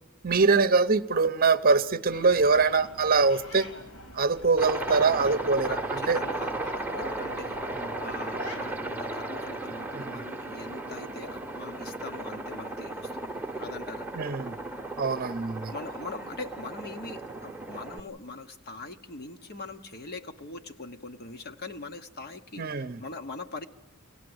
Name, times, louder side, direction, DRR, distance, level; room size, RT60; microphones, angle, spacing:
voice 1, 0.2-3.7 4.1-6.2 7.7-7.9 9.9-10.2 14.1-14.6 15.0-15.7 22.6-23.0, right 4 dB, 40° right, 0.8 m, -24 dB
sound 1, 2.1-9.1, left 1 dB, 75° left, 3.3 m, -44 dB
Aircraft, 4.6-18.0, right 2 dB, 10° right, 1.0 m, -35 dB
voice 2, 5.7-14.1 15.7-23.7, left 3 dB, 45° left, 1.0 m, -42 dB
24.0 x 18.0 x 7.9 m
head